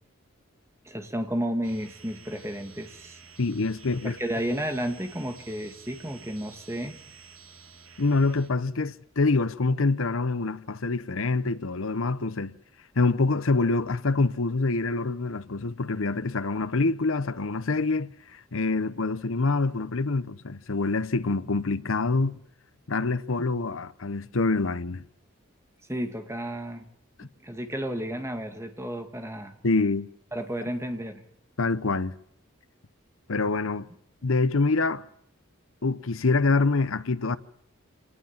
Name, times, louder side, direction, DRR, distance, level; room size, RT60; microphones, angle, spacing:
voice 1, 0.8-3.2 4.0-7.0 25.9-26.9 27.4-29.6 30.3-31.2, equal, 15° right, 2.1 m, -32 dB
sound 1, 1.6-8.5, right 5 dB, 70° right, 3.0 m, -51 dB
voice 2, 3.4-4.2 8.0-12.6 13.0-22.4 22.9-25.0 27.2-27.3 29.6-30.1 31.6-32.1 33.3-33.9 34.2-35.0 35.8-37.4, left 3 dB, 70° left, 0.9 m, -26 dB
27.0 x 19.5 x 7.4 m
head